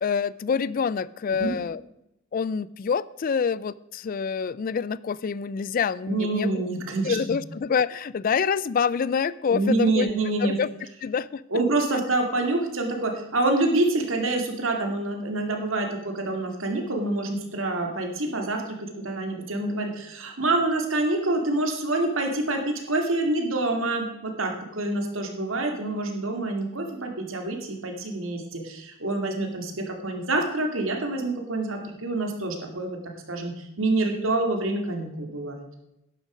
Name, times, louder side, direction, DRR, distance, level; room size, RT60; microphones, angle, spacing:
voice 1, 0.0-1.8 2.3-6.7 7.0-10.1 10.4-10.7 11.0-11.4, left 6 dB, 40° left, 20 dB, 0.3 m, -26 dB
voice 2, 6.1-7.2 9.5-10.6 11.5-35.6, right 2 dB, 75° right, 3 dB, 2.3 m, -27 dB
11.5 x 10.5 x 5.0 m, 0.85 s
head